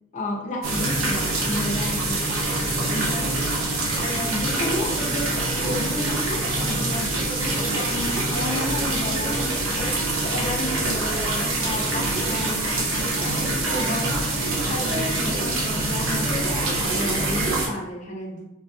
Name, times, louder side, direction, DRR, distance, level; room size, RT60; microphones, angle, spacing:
voice 1, 0.1-2.3 2.9-5.0 5.5-10.0 10.3-14.1 14.6-16.4 16.8-18.4, left 1 dB, 35° left, 0 dB, 0.5 m, -32 dB
sound 1, 0.6-17.7, right 2 dB, 85° right, 0.7 m, -25 dB
sound 2, 10.3-16.0, equal, 30° right, 1.3 m, -45 dB
3.2 x 2.7 x 2.2 m, 0.90 s
head